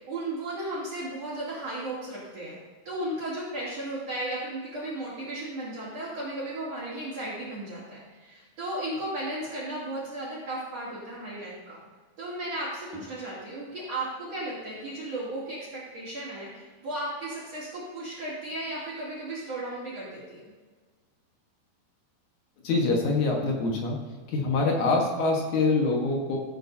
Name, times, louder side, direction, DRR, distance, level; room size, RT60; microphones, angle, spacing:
voice 1, 0.0-2.6 2.9-11.8 12.2-20.4, right 1 dB, 40° right, -10 dB, 3.5 m, -35 dB
voice 2, 22.6-24.0 24.3-26.4, left 3 dB, 60° left, 0 dB, 2.1 m, -25 dB
16.5 x 8.9 x 2.8 m, 1.4 s
omnidirectional pair, 5.1 m